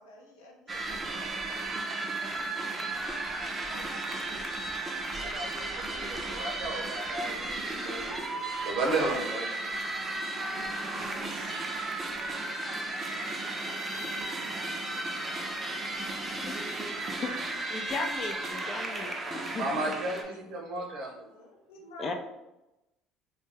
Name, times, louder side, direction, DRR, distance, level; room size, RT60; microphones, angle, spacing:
voice 1, 0.0-3.9 18.5-20.5 21.3-22.1, left 1 dB, 90° left, -1 dB, 0.6 m, -51 dB
sound 1, 0.7-20.2, right 2 dB, 25° right, 0.4 m, -34 dB
voice 2, 5.2-9.5 11.3-11.6 19.6-21.1, right 2 dB, 65° right, 0 dB, 0.7 m, -34 dB
voice 3, 17.2-19.1 19.5-19.9 22.0-22.1, left 3 dB, 40° left, 5 dB, 0.4 m, -36 dB
2.2 x 2.1 x 3.2 m, 0.95 s
supercardioid pair, 80°, 0 cm